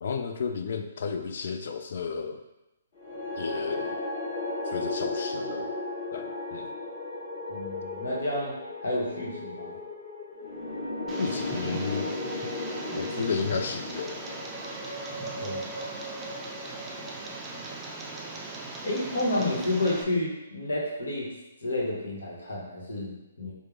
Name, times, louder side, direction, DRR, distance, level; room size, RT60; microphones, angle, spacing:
voice 1, 0.0-2.4 3.4-4.0 4.7-5.7 6.1-6.7 11.2-12.1 13.0-14.2, left 5 dB, 60° left, 7 dB, 0.3 m, -32 dB
sound 1, 3.0-19.3, left 2 dB, 45° left, 1.3 m, -36 dB
voice 2, 7.5-9.8 15.4-15.7 18.8-21.3 21.6-23.5, left 1 dB, 75° left, -4 dB, 1.0 m, -30 dB
Tick, 11.1-20.0, right 2 dB, 15° right, 0.4 m, -39 dB
3.4 x 2.0 x 3.2 m, 0.94 s
figure-of-eight pair, 135°, 0 cm